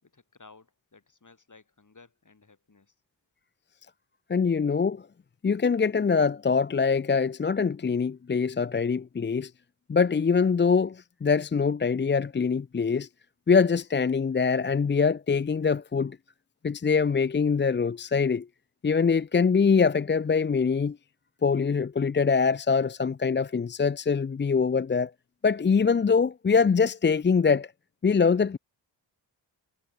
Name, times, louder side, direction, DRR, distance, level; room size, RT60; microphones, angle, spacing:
voice 1, 0.0-3.0, left 4 dB, 45° left, 5.8 m, -56 dB
voice 2, 4.3-5.0 5.4-9.5 9.9-13.1 13.5-16.2 16.6-18.5 18.8-21.0 21.4-25.1 25.4-27.7 28.0-28.6, left 5 dB, 25° left, 0.5 m, -23 dB
wide cardioid pair, 75°, 44 cm